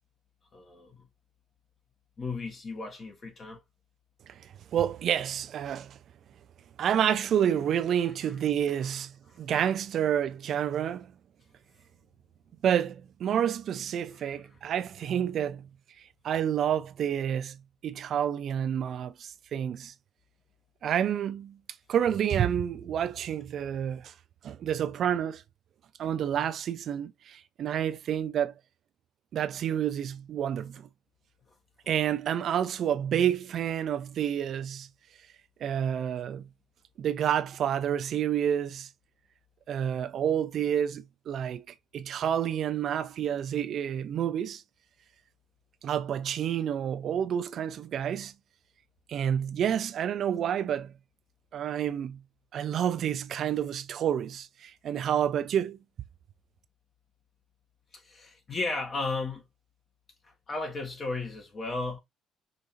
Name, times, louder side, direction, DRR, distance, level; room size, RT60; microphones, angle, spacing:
voice 1, 0.5-1.1 2.2-3.6 8.2-8.3 8.7-9.4 14.1-14.4 32.1-32.2 57.9-59.5 60.2-62.0, left 3 dB, 45° left, 1.2 m, -35 dB
voice 2, 4.7-6.0 6.8-9.1 9.4-11.1 12.6-15.6 16.2-17.6 17.8-19.9 20.8-21.6 21.9-24.1 24.4-25.4 26.0-28.5 29.3-30.9 31.9-34.9 35.6-36.4 37.0-38.9 39.7-41.6 41.9-44.6 45.8-48.3 49.1-50.9 51.5-52.2 52.5-55.8, right 9 dB, 60° right, 0.4 m, -29 dB
5.0 x 2.7 x 2.5 m
supercardioid pair, 65°, 0 cm